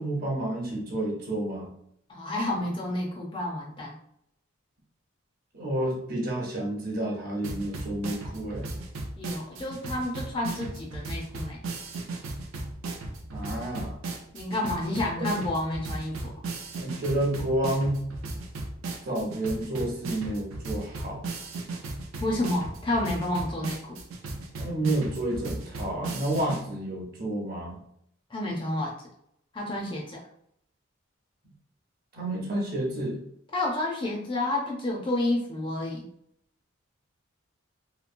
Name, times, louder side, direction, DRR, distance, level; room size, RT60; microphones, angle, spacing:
voice 1, 0.0-1.7 5.5-8.7 13.3-13.9 16.8-18.0 19.0-21.2 24.6-27.8 32.1-33.2, right 1 dB, 45° right, -2 dB, 0.7 m, -30 dB
voice 2, 2.1-3.9 9.2-11.6 14.3-16.3 22.2-24.0 28.3-28.9 29.5-30.2 33.5-36.1, left 1 dB, 25° left, -2 dB, 0.5 m, -30 dB
sound 1, 7.4-26.6, right 2 dB, 80° right, 0.5 m, -36 dB
2.9 x 2.0 x 2.5 m, 0.71 s
head